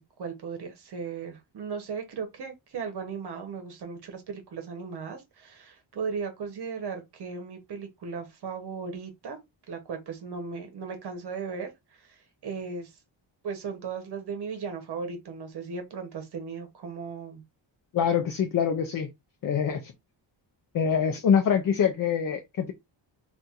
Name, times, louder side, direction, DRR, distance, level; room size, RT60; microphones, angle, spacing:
voice 1, 0.0-9.4 9.7-13.0 13.4-17.4, right 5 dB, 60° right, 0.9 m, -37 dB
voice 2, 17.9-19.1 19.4-19.9 20.7-22.7, left 7 dB, 50° left, 0.5 m, -25 dB
4.1 x 2.5 x 2.4 m
wide cardioid pair, 180°, 46 cm